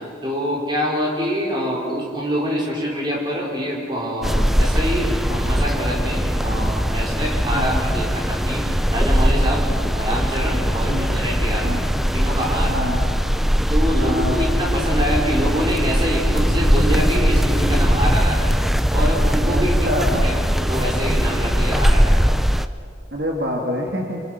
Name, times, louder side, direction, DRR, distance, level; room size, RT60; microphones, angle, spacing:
voice 1, 0.2-9.7 9.9-11.7 12.1-12.8 13.7-18.5 18.9-19.8 20.1-22.2, equal, 25° right, -3 dB, 5.1 m, -25 dB
sound 1, 4.2-22.7, equal, ahead, 0.5 m, -20 dB
voice 2, 10.8-11.1 11.6-11.8 12.7-13.0 14.0-14.4 19.5-20.3 23.1-24.2, equal, 60° right, -1 dB, 2.6 m, -26 dB
26.0 x 25.5 x 6.1 m, 2.3 s
head